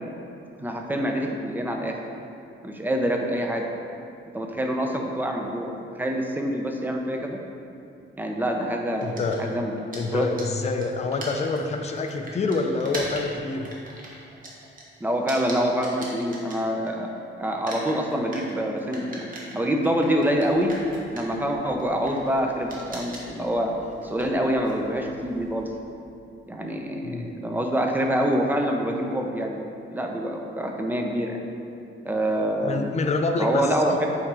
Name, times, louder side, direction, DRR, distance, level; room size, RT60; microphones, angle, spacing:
voice 1, 0.6-1.9 2.6-3.6 4.3-5.7 6.0-7.4 8.2-9.1 9.4-9.7 10.1-10.3 15.0-17.1 17.4-19.3 19.5-20.7 21.1-23.7 24.0-25.7 26.5-29.6 29.9-31.4 32.0-32.9 33.4-34.1, equal, 10° right, 2 dB, 0.7 m, -26 dB
voice 2, 9.0-9.5 9.9-13.7 23.2-23.3 27.0-27.3 32.6-34.0, left 3 dB, 35° left, 4 dB, 0.6 m, -27 dB
sound 1, 9.0-17.2 17.4-25.7, right 1 dB, 45° right, 1.4 m, -41 dB
8.5 x 3.8 x 4.8 m, 2.6 s
cardioid pair, 130°, 20 cm